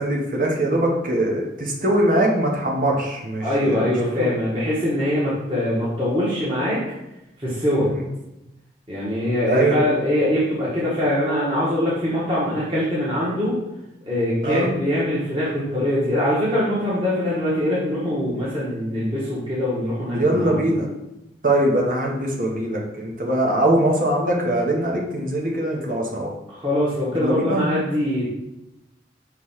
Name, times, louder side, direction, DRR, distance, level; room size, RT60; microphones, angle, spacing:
voice 1, 0.0-4.3 7.8-8.0 9.5-9.8 14.4-14.7 20.1-20.9 21.4-26.3 27.1-27.7, right 1 dB, 50° right, -1 dB, 1.3 m, -22 dB
voice 2, 3.4-6.8 7.4-7.9 8.9-13.6 14.1-20.7 26.5-28.2, left 1 dB, 30° right, -9 dB, 1.6 m, -23 dB
6.6 x 3.3 x 5.7 m, 0.94 s
head